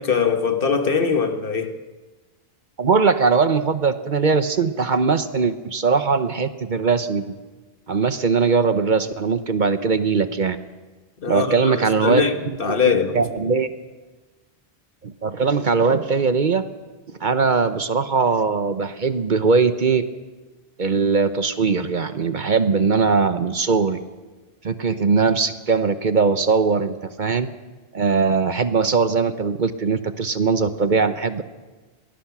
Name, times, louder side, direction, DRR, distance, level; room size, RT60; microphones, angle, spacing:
voice 1, 0.0-1.7 11.2-13.2, left 5 dB, 60° left, 1.5 m, -22 dB
voice 2, 2.8-7.3 7.9-10.6 11.3-12.8 13.1-13.7 15.0-16.6 17.2-20.0 20.8-24.0 24.6-27.5 27.9-31.4, right 5 dB, 50° right, 0.9 m, -20 dB
22.5 x 18.5 x 6.1 m
omnidirectional pair, 1.1 m